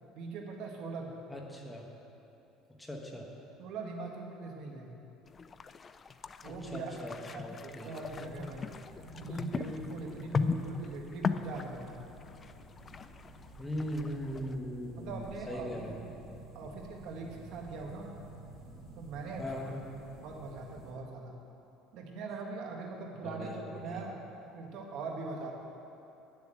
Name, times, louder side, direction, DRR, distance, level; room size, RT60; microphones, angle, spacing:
voice 1, 0.1-1.1 3.6-4.9 6.4-6.9 7.3-12.0 15.0-16.1 16.5-18.1 18.9-19.4 20.2-21.4 21.9-24.2 24.5-25.5, right 3 dB, 60° right, 1 dB, 1.5 m, -41 dB
voice 2, 1.3-1.9 2.8-3.3 6.4-7.9 13.6-16.0 19.4-19.8 23.2-24.1, equal, 5° left, 0 dB, 1.3 m, -40 dB
sound 1, 5.3-14.5, left 5 dB, 25° left, 0.3 m, -38 dB
sound 2, 7.9-20.9, right 2 dB, 45° right, 2.8 m, -51 dB
9.8 x 7.2 x 7.5 m, 2.9 s
cardioid pair, 145°, 0 cm